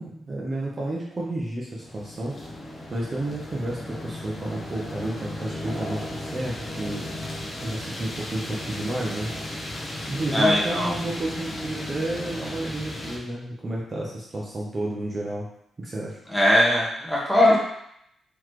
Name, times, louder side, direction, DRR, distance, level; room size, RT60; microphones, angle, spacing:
voice 1, 0.0-2.3 2.9-7.3 7.6-9.3 10.1-15.5 15.8-16.2, right 1 dB, 25° right, -4 dB, 0.6 m, -31 dB
sound 1, 1.8-13.2, left 1 dB, 30° left, 0.8 m, -35 dB
voice 2, 10.3-10.9 16.3-17.6, left 1 dB, 5° left, -5 dB, 1.1 m, -20 dB
3.9 x 3.0 x 3.1 m, 0.74 s
wide cardioid pair, 135°, 0 cm